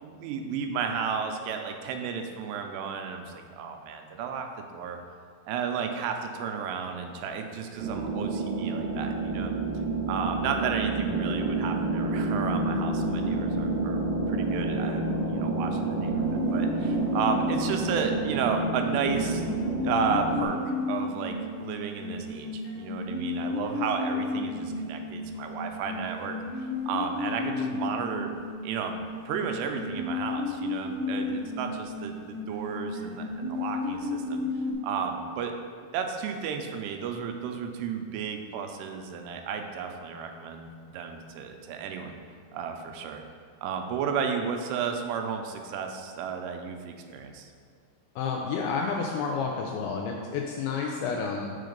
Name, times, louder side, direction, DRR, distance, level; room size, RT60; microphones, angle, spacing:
voice 1, 0.0-5.0 5.5-9.6 10.1-19.5 19.8-28.3 28.6-29.0 29.3-34.4 34.8-35.5 35.9-42.1 42.5-43.2 43.6-47.5, right 6 dB, 90° right, 5 dB, 2.7 m, -33 dB
sound 1, 7.8-20.5, right 3 dB, 70° right, 2.6 m, -29 dB
sound 2, 16.2-34.7, left 3 dB, 65° left, 1.5 m, -33 dB
voice 2, 48.2-51.6, left 5 dB, 85° left, 0 dB, 2.2 m, -30 dB
6.5 x 3.8 x 5.0 m, 2.1 s
omnidirectional pair, 4.8 m